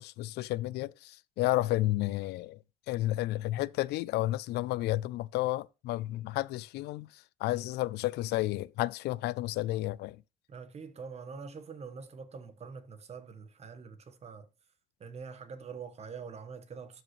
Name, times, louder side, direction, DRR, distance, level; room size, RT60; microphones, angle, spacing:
voice 1, 0.0-2.6 2.9-10.2, left 17 dB, 80° left, 0.4 m, -32 dB
voice 2, 10.5-14.5 15.0-17.0, right 5 dB, 40° right, 1.3 m, -45 dB
12.5 x 5.2 x 3.1 m
cardioid pair, 110°, 17 cm